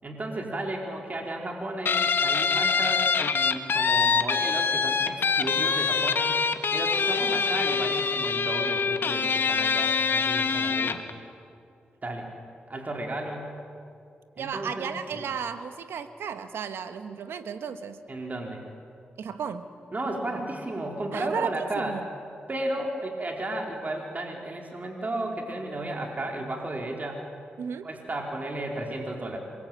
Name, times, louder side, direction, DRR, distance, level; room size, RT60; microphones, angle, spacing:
voice 1, 0.0-6.3 6.7-11.0 12.0-12.3 12.7-13.5 14.4-15.3 18.1-18.6 19.9-22.0 22.5-27.2 27.8-29.4, right 1 dB, 40° right, 1 dB, 4.4 m, -33 dB
Guitar, 1.9-11.1, left 5 dB, 65° left, 1.6 m, -25 dB
voice 2, 14.4-18.0 19.2-19.7 21.1-22.1 27.6-27.9, right 7 dB, 85° right, 9 dB, 1.5 m, -34 dB
26.5 x 23.0 x 9.0 m, 2.4 s
cardioid pair, 50°, 4 cm